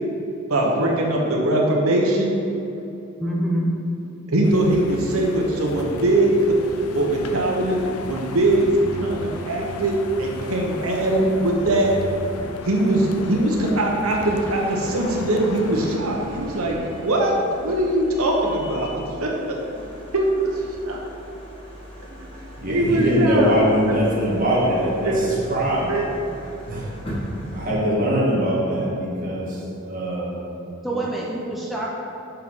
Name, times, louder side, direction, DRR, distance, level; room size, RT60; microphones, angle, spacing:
voice 1, 0.5-2.4 4.3-6.5 6.9-7.8 8.1-8.7 9.0-9.9 10.2-11.9 12.6-17.3 17.6-19.6 20.1-20.5 20.8-21.0 21.5-21.6 22.1-22.3 22.7-23.6 23.9-24.0 24.5-24.6 25.0-25.2 25.9-26.1, right 1 dB, 80° right, -1 dB, 1.1 m, -21 dB
voice 2, 3.2-3.7 30.8-31.9, right 1 dB, ahead, -4 dB, 0.6 m, -26 dB
sound 1, 4.4-16.0, left 3 dB, 85° left, 0.5 m, -35 dB
sound 2, 14.2-27.7, equal, 25° left, 1.6 m, -39 dB
voice 3, 22.6-26.0 26.7-26.9 27.5-30.4 30.9-31.0, equal, 40° right, -5 dB, 1.7 m, -22 dB
6.1 x 5.6 x 5.4 m, 2.9 s
head